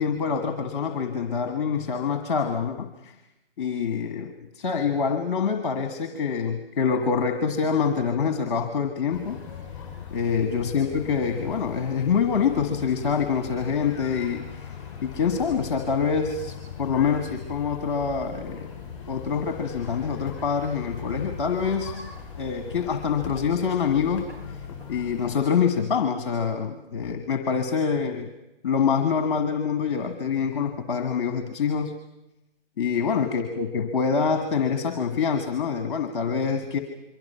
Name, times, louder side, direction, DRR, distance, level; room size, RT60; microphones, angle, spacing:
voice 1, 0.0-3.1 3.6-9.4 10.1-14.7 15.0-18.7 19.0-22.0 22.4-24.3 24.5-24.6 24.9-28.3 28.6-31.9 32.8-36.8, left 6 dB, 25° left, 6 dB, 1.6 m, -25 dB
sound 1, 9.1-25.4, left 7 dB, 10° left, 7.7 m, -39 dB
28.0 x 23.5 x 5.7 m, 0.93 s
hypercardioid pair, 170°, 30 cm